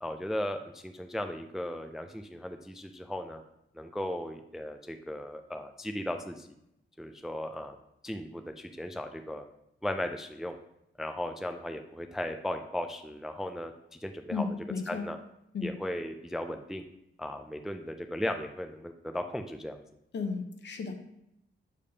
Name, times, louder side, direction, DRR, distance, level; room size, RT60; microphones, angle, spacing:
voice 1, 0.0-3.4 3.8-6.5 7.0-7.8 8.0-9.5 9.8-10.6 11.0-13.7 14.0-14.5 14.9-15.2 15.6-16.8 17.2-19.8, left 1 dB, ahead, 6 dB, 0.3 m, -36 dB
voice 2, 14.3-15.1 15.5-15.7 20.1-21.0, left 4 dB, 60° left, 6 dB, 0.8 m, -34 dB
6.7 x 5.1 x 2.7 m, 0.81 s
wide cardioid pair, 125°, 21 cm